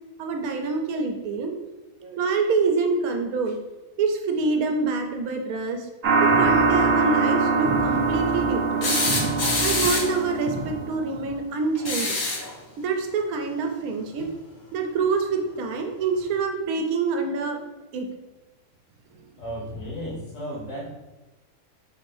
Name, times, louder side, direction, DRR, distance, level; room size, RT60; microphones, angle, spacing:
voice 1, 0.2-1.5 2.0-3.6 4.0-5.9 6.2-9.0 9.6-12.2 12.8-14.3 14.7-17.6 17.9-18.1, right 4 dB, 90° right, 4 dB, 1.0 m, -26 dB
sound 1, 6.0-11.3, right 4 dB, 50° right, 0.9 m, -23 dB
sound 2, 8.8-10.2 11.7-12.5 14.2-14.3 15.7-15.8, left 2 dB, 45° left, 0.7 m, -25 dB
voice 2, 19.4-20.8, equal, 65° left, -4 dB, 1.5 m, -34 dB
4.5 x 2.6 x 3.2 m, 1.1 s
omnidirectional pair, 1.5 m